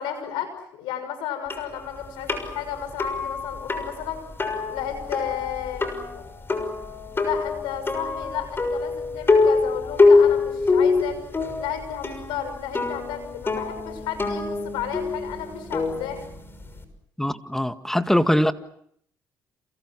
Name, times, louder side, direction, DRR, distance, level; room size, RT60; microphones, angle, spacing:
voice 1, 0.0-4.2 4.7-6.3 7.0-11.2 11.6-16.2, left 9 dB, 85° left, 10 dB, 6.5 m, -33 dB
sound 1, 1.5-16.8, left 3 dB, 30° left, 6.3 m, -24 dB
voice 2, 17.2-18.5, equal, 5° left, 9 dB, 1.9 m, -22 dB
29.0 x 28.5 x 6.2 m, 0.67 s
supercardioid pair, 70°, 8 cm